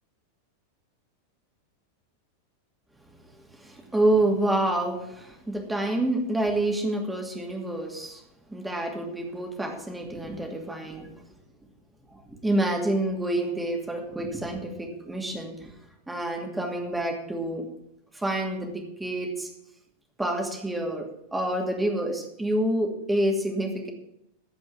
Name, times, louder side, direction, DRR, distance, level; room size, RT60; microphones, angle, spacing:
voice 1, 3.4-8.2 8.5-11.1 12.1-15.7 16.1-17.7 18.1-19.5 20.2-23.9, right 1 dB, 5° right, 2 dB, 2.5 m, -28 dB
15.0 x 5.2 x 8.8 m, 0.82 s
figure-of-eight pair, 90°, 0 cm